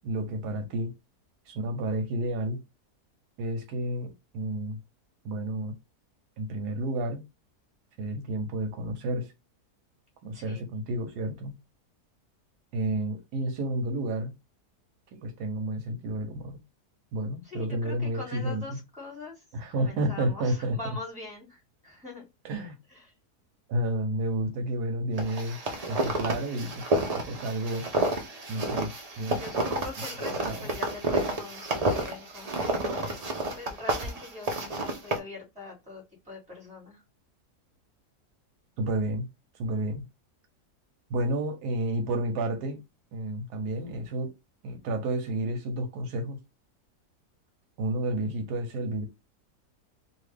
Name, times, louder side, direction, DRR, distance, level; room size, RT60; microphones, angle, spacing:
voice 1, 0.0-0.9 1.5-2.6 3.4-4.8 5.2-5.8 6.4-7.2 8.0-9.3 10.2-11.5 12.7-14.3 15.1-16.6 17.1-18.8 19.5-21.0 22.4-22.8 23.7-25.6 25.9-27.9 28.5-29.4 30.5-30.8 38.8-39.3 39.6-40.0 41.1-42.8 43.1-44.4 44.6-46.4 47.8-49.0, right 1 dB, 90° right, 1.3 m, -31 dB
voice 2, 10.3-10.6 17.4-19.4 19.7-22.2 22.9-23.1 29.3-33.2 33.5-37.0, left 3 dB, 5° right, 1.6 m, -42 dB
sound 1, 25.2-35.2, right 2 dB, 70° right, 0.3 m, -30 dB
2.8 x 2.7 x 3.2 m
omnidirectional pair, 1.7 m